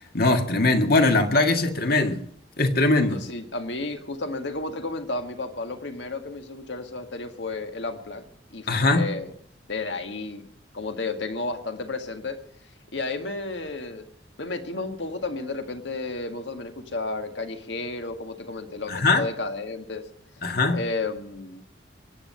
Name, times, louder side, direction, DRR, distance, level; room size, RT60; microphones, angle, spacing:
voice 1, 0.1-2.2 2.6-3.2 8.7-9.1 18.9-19.3 20.4-20.8, left 2 dB, 55° left, 1.9 m, -21 dB
voice 2, 3.1-8.2 8.5-9.3 9.7-10.4 10.7-12.4 12.9-14.0 14.4-20.0 20.7-21.6, left 3 dB, 70° left, 1.8 m, -32 dB
23.5 x 9.5 x 5.7 m
head